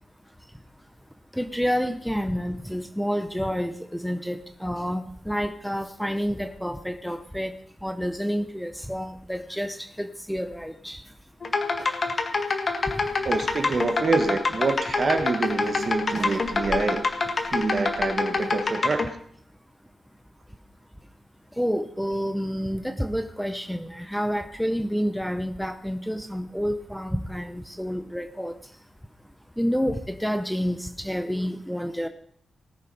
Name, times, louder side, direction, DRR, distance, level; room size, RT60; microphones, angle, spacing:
voice 1, 1.3-7.6 7.8-11.0 11.8-11.9 21.6-28.5 29.6-32.1, equal, ahead, 8 dB, 0.8 m, -29 dB
sound 1, 11.4-19.1, left 4 dB, 40° left, 1.7 m, -26 dB
sound 2, 13.0-18.6, right 1 dB, 55° right, 3.6 m, -44 dB
voice 2, 13.2-17.0 17.5-19.2, right 4 dB, 40° right, 8 dB, 1.4 m, -26 dB
19.0 x 7.3 x 5.5 m, 0.63 s
wide cardioid pair, 160°, 0 cm